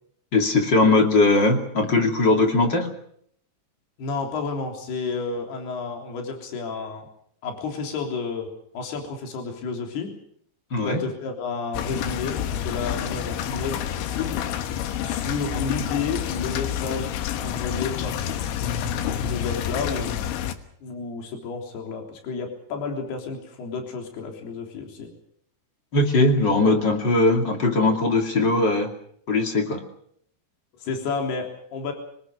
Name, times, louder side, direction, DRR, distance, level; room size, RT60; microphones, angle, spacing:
voice 1, 0.3-2.9 10.7-11.0 25.9-28.9 29.3-29.8, left 2 dB, 30° left, 4 dB, 2.4 m, -20 dB
voice 2, 4.0-7.1 7.4-8.5 8.7-10.1 10.8-14.4 15.0-17.1 17.4-20.3 20.8-25.1 30.7-31.9, left 4 dB, 60° left, 3 dB, 5.4 m, -31 dB
sound 1, 11.7-20.6, left 10 dB, 85° left, 3.7 m, -28 dB
25.0 x 19.5 x 6.7 m, 0.66 s
omnidirectional pair, 5.2 m